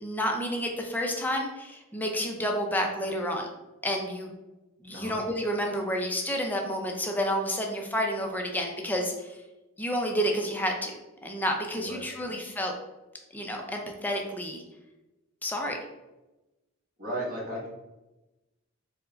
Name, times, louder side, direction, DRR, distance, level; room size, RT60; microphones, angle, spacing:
voice 1, 0.0-3.5 3.8-4.3 4.8-9.4 9.8-10.9 11.2-12.7 13.3-14.6 15.4-15.8, equal, 10° left, 1 dB, 0.5 m, -30 dB
voice 2, 11.7-12.3 17.0-17.7, right 1 dB, 40° right, -4 dB, 1.2 m, -35 dB
4.4 x 2.2 x 3.8 m, 1.0 s
head